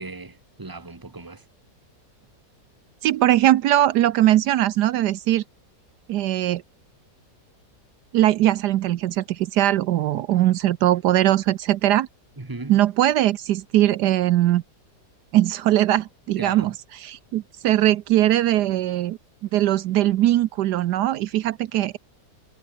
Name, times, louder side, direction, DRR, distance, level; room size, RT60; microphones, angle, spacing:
voice 1, 0.0-1.4 12.4-12.8 16.4-16.8, right 3 dB, 10° right, 1.6 m, -37 dB
voice 2, 3.0-5.4 6.1-6.6 8.1-12.1 12.7-14.6 15.3-16.7 17.0-19.2 19.5-22.0, right 13 dB, 75° right, 1.2 m, -20 dB
omnidirectional pair, 1.8 m